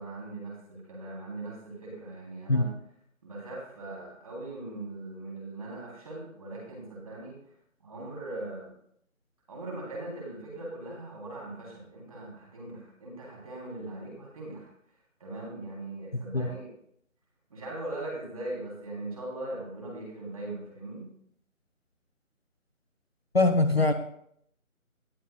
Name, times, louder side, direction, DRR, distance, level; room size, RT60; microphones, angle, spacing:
voice 1, 0.0-2.7 3.2-7.4 7.8-8.7 9.5-14.7 15.2-16.7 17.5-21.1, right 2 dB, 25° right, -3 dB, 3.1 m, -40 dB
voice 2, 23.3-23.9, left 2 dB, 50° left, 9 dB, 0.6 m, -22 dB
18.0 x 7.6 x 2.3 m, 0.69 s
figure-of-eight pair, 160°, 41 cm